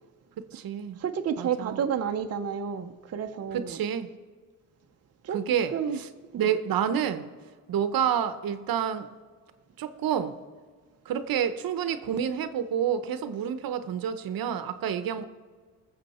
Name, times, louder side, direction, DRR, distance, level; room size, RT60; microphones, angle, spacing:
voice 1, 0.4-1.0 1.4-1.8 3.5-4.1 5.3-6.1 6.4-7.3 7.7-9.1 9.8-10.4 11.1-15.3, right 8 dB, 85° right, 0.9 m, -29 dB
voice 2, 1.0-3.8 5.2-5.4 5.7-6.0 6.3-6.5, right 7 dB, 45° right, 0.7 m, -30 dB
20.5 x 7.5 x 4.2 m
wide cardioid pair, 135°, 34 cm